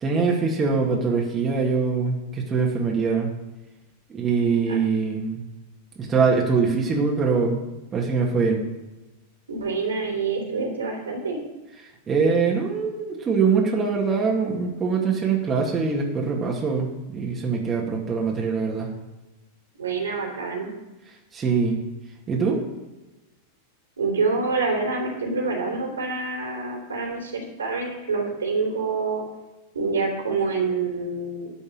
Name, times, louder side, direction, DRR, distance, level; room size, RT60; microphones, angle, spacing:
voice 1, 0.0-3.3 4.1-5.4 6.0-7.6 7.9-8.6 12.1-18.9 21.3-21.8 22.3-22.6, right 5 dB, 20° right, -2 dB, 2.1 m, -23 dB
voice 2, 9.5-11.4 19.8-20.7 24.0-29.2 29.7-31.5, right 4 dB, 70° right, 1 dB, 3.2 m, -26 dB
12.5 x 5.3 x 7.8 m, 1.1 s
figure-of-eight pair, 90°, 0 cm